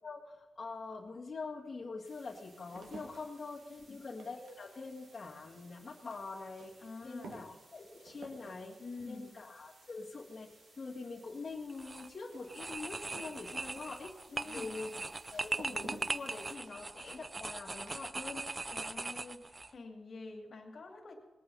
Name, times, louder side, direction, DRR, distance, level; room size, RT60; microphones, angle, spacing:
voice 1, 0.0-6.7 7.0-8.8 9.1-10.5 10.7-14.1 14.4-14.9 15.3-18.4, left 3 dB, 25° left, -6 dB, 1.9 m, -44 dB
sound 1, 0.8-0.9 1.6-18.7 19.0-19.6, right 3 dB, 75° right, 2.4 m, -56 dB
sound 2, 2.0-16.5, right 2 dB, 50° right, 3.5 m, -63 dB
voice 2, 6.8-7.4 8.8-9.3 14.3-14.8 18.7-21.1, left 3 dB, 45° left, 2 dB, 2.3 m, -47 dB
sound 3, 11.7-12.1 12.5-19.7, right 3 dB, 20° right, 0.4 m, -40 dB
20.0 x 8.7 x 5.5 m, 1.2 s
wide cardioid pair, 175°, 0 cm